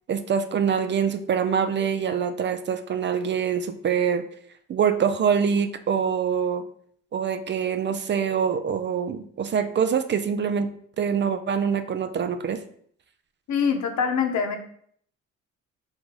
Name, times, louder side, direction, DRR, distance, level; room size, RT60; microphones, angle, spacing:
voice 1, 0.1-4.2 4.7-6.6 7.1-10.7 11.0-12.6, right 7 dB, 40° right, 10 dB, 0.4 m, -24 dB
voice 2, 13.5-14.6, left 6 dB, 70° left, 5 dB, 0.8 m, -24 dB
3.6 x 2.6 x 4.6 m, 0.62 s
cardioid pair, 90°, 30 cm